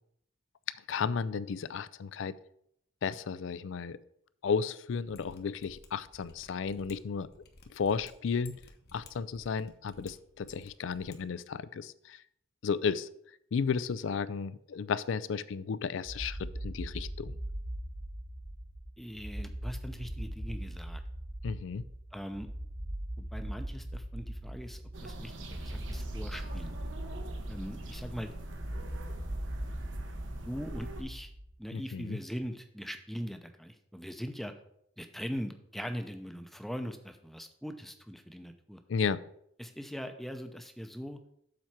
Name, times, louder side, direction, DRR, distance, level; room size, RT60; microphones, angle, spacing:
voice 1, 0.9-2.3 3.0-4.0 4.4-7.3 7.7-8.6 8.9-12.2 12.6-13.1 13.5-17.3 21.4-21.8 31.7-32.2 38.9-39.2, left 6 dB, 75° left, 17 dB, 0.4 m, -33 dB
Mechanisms, 5.0-11.2 11.4-11.5, left 2 dB, 55° left, 1.0 m, -55 dB
sound 1, 16.0-31.6, right 1 dB, 45° right, 1.2 m, -40 dB
voice 2, 19.0-21.0 22.1-22.5 23.2-26.8 27.5-28.3 30.4-31.3 31.6-34.5 35.0-38.8 39.6-41.2, equal, ahead, 6 dB, 0.6 m, -41 dB
sound 2, 24.9-31.0, right 1 dB, 75° right, 1.0 m, -43 dB
7.4 x 4.4 x 5.8 m, 0.72 s
head